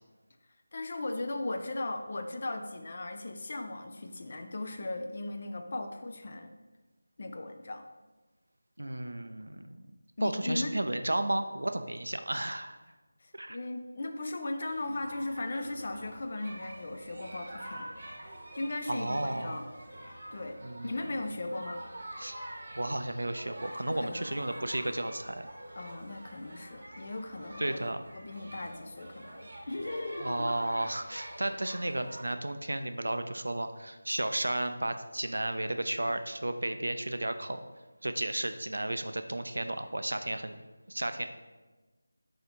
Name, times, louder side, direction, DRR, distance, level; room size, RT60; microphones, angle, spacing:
voice 1, 0.7-6.5 7.2-7.9 10.2-10.8 13.2-17.9 18.5-19.7 20.3-21.9 23.9-24.2 25.7-27.8 28.1-30.5, left 2 dB, 45° left, 5 dB, 0.4 m, -37 dB
voice 2, 8.8-9.9 10.2-12.8 13.3-13.6 18.9-19.6 20.6-21.0 22.2-22.4 22.8-25.5 27.6-28.1 30.2-37.6 38.0-40.6 40.9-41.2, right 1 dB, 75° right, 8 dB, 0.4 m, -33 dB
sound 1, 14.7-32.2, right 1 dB, 50° right, 0.8 m, -47 dB
4.1 x 2.8 x 4.3 m, 1.2 s
figure-of-eight pair, 165°, 0 cm